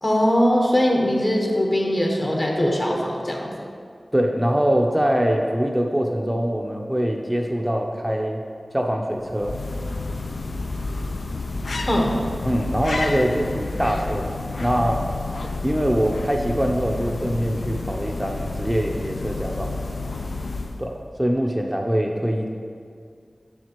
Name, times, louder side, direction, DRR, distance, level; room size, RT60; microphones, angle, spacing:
voice 1, 0.0-3.5 11.9-12.1, equal, 45° left, -1 dB, 1.1 m, -21 dB
voice 2, 4.1-8.4 8.7-9.6 12.5-15.0 15.6-19.8 20.8-22.5, equal, 10° right, 1 dB, 0.5 m, -23 dB
sound 1, 9.2-21.0, left 3 dB, 90° left, 0.3 m, -30 dB
7.4 x 6.3 x 3.0 m, 2.2 s
wide cardioid pair, 60°, 0 cm